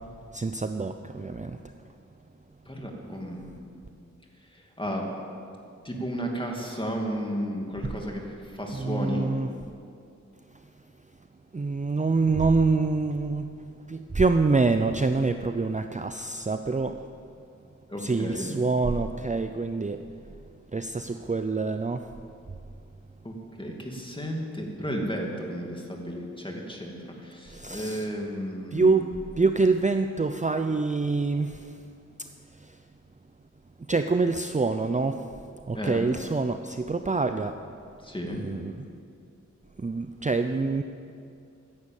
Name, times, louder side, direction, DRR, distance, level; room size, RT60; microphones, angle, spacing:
voice 1, 0.3-1.6 7.8-7.9 8.7-9.5 11.5-13.5 13.9-17.0 18.0-20.1 20.7-22.1 27.5-28.1 28.7-31.8 32.2-32.3 32.6-32.8 33.9-35.3 35.7-37.6 38.3-38.9 39.8-40.8, right 3 dB, 25° right, 8 dB, 0.5 m, -26 dB
voice 2, 2.7-3.5 4.8-5.1 5.8-9.3 17.9-18.6 23.2-29.2 35.7-36.1 38.0-38.4, equal, 15° left, 0 dB, 2.5 m, -33 dB
15.5 x 10.5 x 7.3 m, 2.5 s
wide cardioid pair, 70°, 29 cm